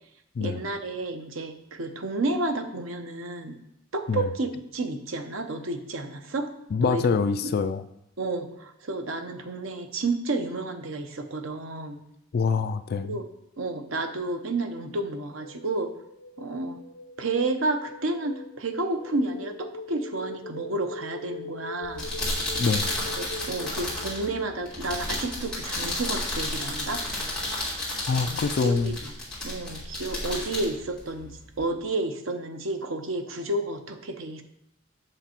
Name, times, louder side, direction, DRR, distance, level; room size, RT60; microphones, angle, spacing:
voice 1, 0.4-3.6 3.9-6.5 6.8-7.1 8.2-12.0 13.1-13.3 13.6-15.9 16.4-16.8 17.2-22.1 23.2-27.0 28.1-29.1 29.4-31.3 31.6-34.4, right 2 dB, 80° right, 7 dB, 0.9 m, -31 dB
voice 2, 6.7-7.8 12.3-13.2 22.6-22.9 28.1-29.0, left 5 dB, 50° left, 11 dB, 0.4 m, -25 dB
sound 1, 14.8-24.5, left 2 dB, 75° left, 0.9 m, -42 dB
sound 2, 21.8-31.6, left 1 dB, 5° left, 3.0 m, -32 dB
7.9 x 6.6 x 4.4 m, 0.80 s
head